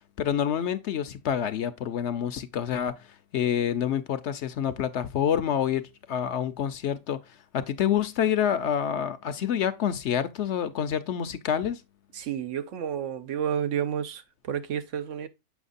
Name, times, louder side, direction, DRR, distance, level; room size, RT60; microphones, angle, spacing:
voice 1, 0.2-3.0 3.3-7.2 7.5-11.8, left 9 dB, 65° left, 0.9 m, -27 dB
voice 2, 12.1-15.3, right 9 dB, 70° right, 1.0 m, -31 dB
7.1 x 5.9 x 2.4 m
omnidirectional pair, 1.4 m